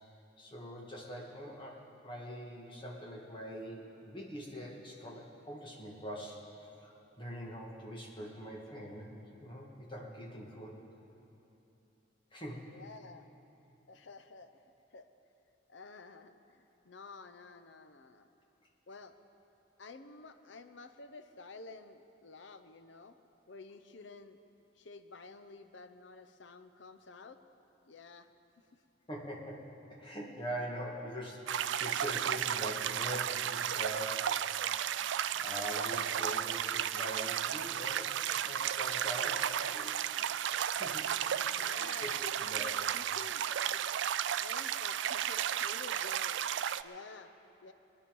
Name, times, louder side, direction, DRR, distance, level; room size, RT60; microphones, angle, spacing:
voice 1, 0.4-6.4 6.7-9.1 9.4-10.8 12.3-12.7 29.1-34.5 35.4-38.1 38.4-39.9 40.3-40.4 40.7-41.1 41.5-42.7, equal, 25° left, -2 dB, 2.1 m, -43 dB
voice 2, 12.7-13.3 13.9-14.6 14.9-15.1 15.7-18.3 18.9-19.1 19.8-23.2 23.5-24.4 24.8-27.4 27.8-28.3 39.1-39.9 41.4-43.8 44.3-46.4 46.8-47.3 47.6-47.7, left 3 dB, 75° left, 9 dB, 0.8 m, -51 dB
sound 1, 31.5-46.8, right 10 dB, 70° right, 0.4 m, -34 dB
23.5 x 9.8 x 5.4 m, 2.9 s
head